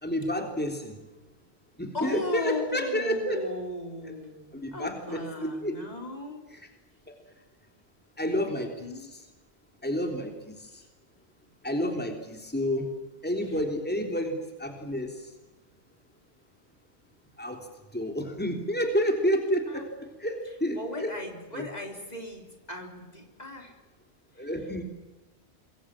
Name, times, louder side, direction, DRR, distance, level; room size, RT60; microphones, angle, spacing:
voice 1, 0.0-0.9 1.8-3.4 4.5-5.8 7.1-7.2 8.2-8.7 9.8-10.7 11.6-12.9 13.2-15.1 17.4-17.7 17.9-19.9 20.2-21.1 21.6-21.7 24.4-24.8, equal, 10° left, 3 dB, 3.5 m, -29 dB
voice 2, 1.9-6.4 8.8-9.1 13.4-13.6 19.7-19.9 20.7-23.8 24.4-24.5, left 1 dB, 40° left, 2 dB, 4.2 m, -36 dB
27.0 x 23.0 x 7.5 m, 1.1 s
omnidirectional pair, 1.1 m